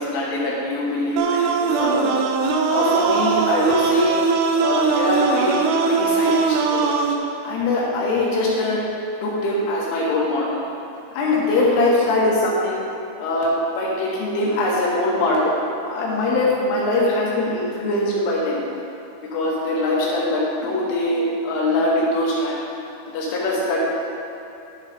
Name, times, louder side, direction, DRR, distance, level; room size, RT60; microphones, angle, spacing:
voice 1, 0.0-2.1 2.7-4.2 4.6-7.1 7.4-8.8 9.2-10.6 11.1-12.8 13.2-15.6 15.9-18.6 19.2-22.6 23.1-23.9, left 2 dB, 75° left, -4 dB, 3.9 m, -22 dB
sound 1, 1.2-7.2, right 5 dB, 85° right, 3.0 m, -20 dB
11.5 x 4.1 x 5.1 m, 2.9 s
omnidirectional pair, 5.9 m